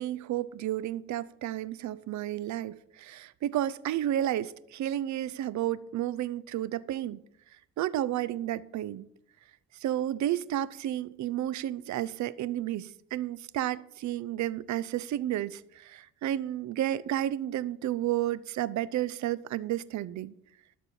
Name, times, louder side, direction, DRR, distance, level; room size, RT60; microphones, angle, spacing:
voice 1, 0.0-7.2 7.8-9.1 9.7-20.3, right 12 dB, 70° right, 0.6 m, -32 dB
13.0 x 4.4 x 8.3 m
cardioid pair, 90°, 30 cm